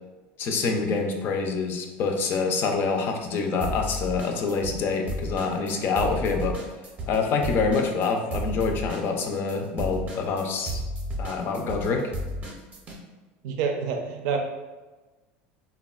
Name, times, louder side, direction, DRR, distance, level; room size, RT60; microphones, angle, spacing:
voice 1, 0.4-6.6 7.1-10.8 11.2-12.0, left 4 dB, 45° left, 3 dB, 0.4 m, -26 dB
sound 1, 3.6-4.8 5.1-13.0, equal, 25° right, 0.6 m, -33 dB
voice 2, 13.4-14.4, right 6 dB, 70° right, 3 dB, 0.4 m, -27 dB
3.4 x 2.2 x 2.3 m, 1.2 s
supercardioid pair, 125°, 5 cm